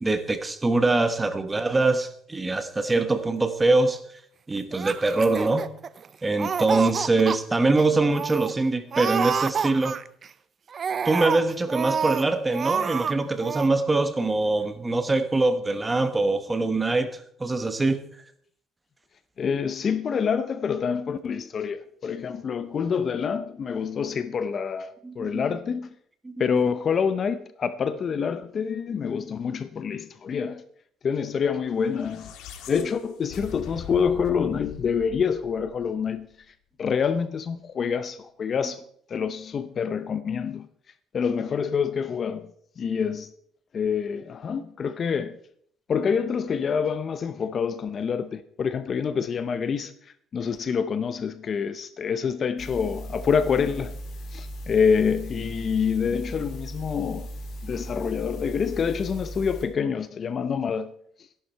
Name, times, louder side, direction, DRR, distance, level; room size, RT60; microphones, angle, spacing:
voice 1, 0.0-4.0 4.5-5.7 6.2-10.0 11.0-17.1 17.4-18.0 25.0-25.4 26.2-26.5, right 2 dB, 15° right, 1.2 m, -23 dB
Laughter, 4.7-6.1 6.4-7.4 7.8-7.9 8.1-8.5 8.9-10.3 10.7-12.2 12.5-13.1 13.4-13.7, right 6 dB, 35° right, 0.6 m, -28 dB
voice 2, 19.4-25.9 26.4-30.6 31.0-32.3 32.7-36.3 36.8-38.8 39.1-40.7 41.1-42.5 42.8-43.3 43.7-45.4 45.9-49.9 50.3-53.9 54.3-57.3 57.6-60.9, left 6 dB, 35° left, 0.6 m, -26 dB
sound 1, 31.8-36.2, left 8 dB, 80° left, 1.8 m, -42 dB
sound 2, 52.6-59.6, equal, 55° left, 2.9 m, -37 dB
13.5 x 11.5 x 4.5 m
cardioid pair, 140°, 0 cm